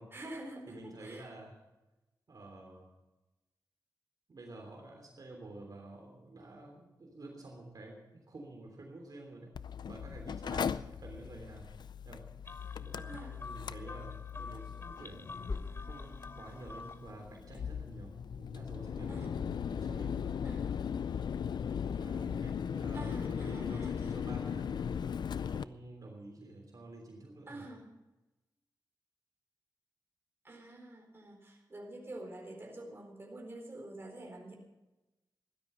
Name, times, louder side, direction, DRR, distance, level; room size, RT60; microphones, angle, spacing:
voice 1, 0.1-1.3 10.5-10.8 13.1-13.4 19.1-19.3 20.4-20.8 22.9-24.1 27.5-27.9 30.4-34.6, right 1 dB, 30° right, 1 dB, 4.2 m, -47 dB
voice 2, 0.7-1.6 2.3-2.9 4.3-9.5 9.9-11.7 12.0-12.2 12.6-15.3 15.9-20.4 21.9-24.9 25.4-27.7, right 2 dB, 60° right, 0 dB, 3.3 m, -50 dB
Mechanical fan, 9.6-25.6, left 7 dB, 80° left, 0.4 m, -38 dB
sound 1, 12.4-17.2, left 4 dB, 35° left, 0.5 m, -45 dB
16.0 x 12.5 x 5.7 m, 1.0 s
wide cardioid pair, 100°, 7 cm